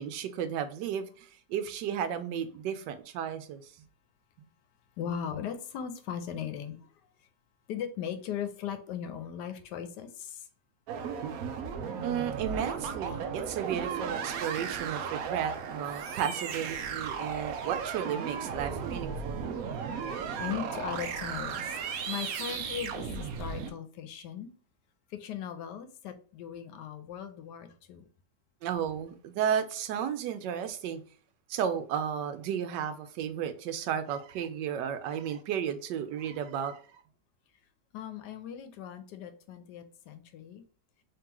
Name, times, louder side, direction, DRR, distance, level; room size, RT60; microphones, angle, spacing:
voice 1, 0.0-3.7 12.0-19.5 28.6-31.0 31.5-37.0, right 8 dB, 85° right, 1.2 m, -33 dB
voice 2, 5.0-7.3 7.7-10.5 11.7-11.8 19.8-21.8 22.1-24.5 25.1-28.0 37.9-40.6, left 9 dB, 80° left, 1.2 m, -38 dB
sound 1, 10.9-23.7, right 6 dB, 70° right, 0.9 m, -35 dB
3.7 x 3.2 x 2.9 m
omnidirectional pair, 1.8 m